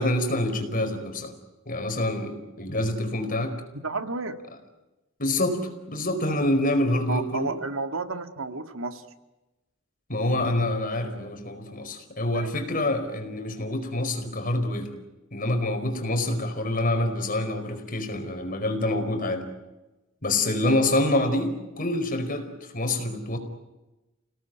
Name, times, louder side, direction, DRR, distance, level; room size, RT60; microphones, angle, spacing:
voice 1, 0.0-1.3 1.7-3.5 5.2-5.6 5.9-7.5 10.1-14.9 15.3-19.4 20.2-22.5 22.7-23.4, left 1 dB, 45° left, 6 dB, 4.8 m, -26 dB
voice 2, 3.8-4.4 7.1-9.0 12.3-12.5, right 3 dB, 80° right, 8 dB, 2.0 m, -31 dB
29.5 x 18.5 x 9.2 m, 1.1 s
head